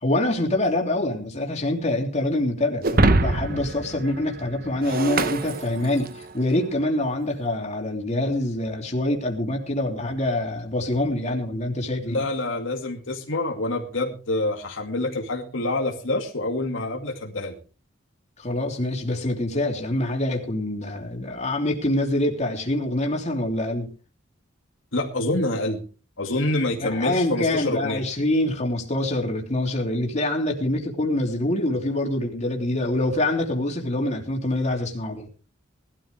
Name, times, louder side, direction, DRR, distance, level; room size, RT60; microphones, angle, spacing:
voice 1, 0.0-12.2 18.4-23.9 26.8-35.3, left 1 dB, 35° left, 1 dB, 3.2 m, -25 dB
Shatter, 2.8-6.3, right 2 dB, 50° right, 1.0 m, -24 dB
voice 2, 12.0-17.6 24.9-25.8 26.2-28.0, left 2 dB, 80° left, 2 dB, 2.3 m, -26 dB
19.0 x 13.0 x 3.5 m, 0.36 s
head